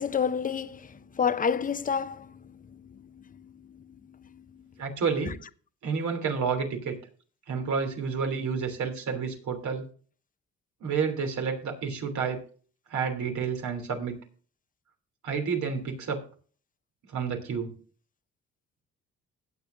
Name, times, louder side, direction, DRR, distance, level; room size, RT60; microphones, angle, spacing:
voice 1, 0.0-4.6, left 7 dB, 25° left, 0.8 m, -31 dB
voice 2, 4.8-5.3 5.8-7.0 7.5-9.8 10.8-12.4 12.9-14.2 15.2-16.2 17.1-17.8, right 5 dB, 70° right, 3.1 m, -30 dB
17.0 x 8.3 x 2.6 m
cardioid pair, 90°, 30 cm